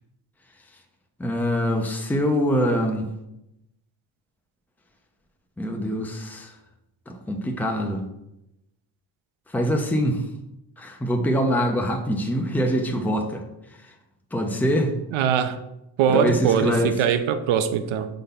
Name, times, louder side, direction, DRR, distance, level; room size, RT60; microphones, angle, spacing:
voice 1, 1.2-3.1 5.6-6.5 7.1-8.1 9.5-10.2 10.8-13.4 14.3-15.0 16.1-17.0, equal, 5° left, 0.7 m, -24 dB
voice 2, 15.1-15.6 16.0-18.1, right 8 dB, 80° right, 0.8 m, -22 dB
5.1 x 4.0 x 5.6 m
cardioid pair, 105°, 46 cm